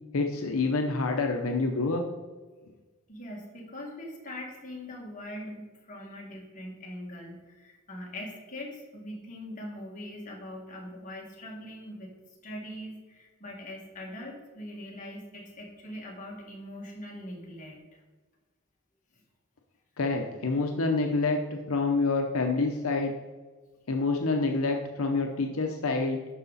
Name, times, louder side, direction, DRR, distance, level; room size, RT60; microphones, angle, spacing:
voice 1, 0.1-2.0 20.0-23.1 23.9-26.2, left 3 dB, 80° left, 3 dB, 0.7 m, -27 dB
voice 2, 3.1-12.1 12.4-17.8, left 1 dB, 35° left, -2 dB, 1.9 m, -42 dB
11.5 x 4.9 x 4.1 m, 1.3 s
head